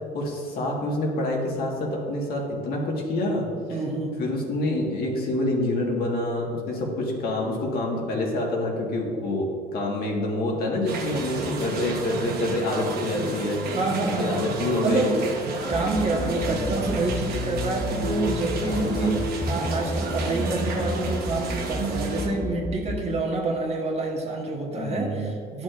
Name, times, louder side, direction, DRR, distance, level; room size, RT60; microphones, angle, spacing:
voice 1, 0.0-3.8 4.2-13.6 14.2-15.1 16.3-16.7 18.6-19.1 24.7-25.3, left 1 dB, 65° left, -1 dB, 1.6 m, -27 dB
voice 2, 3.7-4.1 13.7-14.4 14.8-15.1 15.7-25.6, right 2 dB, 40° right, 0 dB, 1.3 m, -27 dB
sound 1, 10.9-22.3, right 2 dB, 65° right, 1.1 m, -31 dB
sound 2, 15.7-23.0, equal, 10° left, 0.4 m, -31 dB
10.5 x 6.1 x 2.5 m, 2.4 s
cardioid pair, 110°, 17 cm